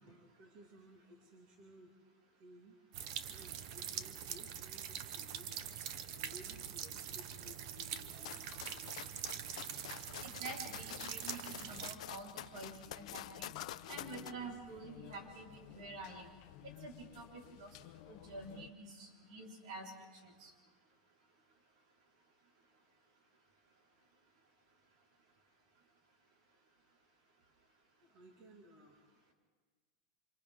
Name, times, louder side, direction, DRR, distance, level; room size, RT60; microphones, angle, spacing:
voice 1, 0.0-1.9 2.4-2.8 3.3-5.6 6.1-9.6 28.0-29.0, equal, 35° right, 0 dB, 2.2 m, -59 dB
sound 1, 2.9-11.9, right 9 dB, 50° right, 0.9 m, -44 dB
sound 2, 8.2-14.3, left 13 dB, 85° left, 0.6 m, -48 dB
voice 2, 10.2-13.5 13.9-16.4 16.8-17.7 18.1-19.9 20.2-20.5, right 3 dB, 70° right, -1 dB, 4.5 m, -48 dB
sound 3, 11.6-18.7, left 15 dB, 50° left, 0.8 m, -55 dB
28.5 x 26.0 x 3.8 m, 1.4 s
supercardioid pair, 170°, 3 cm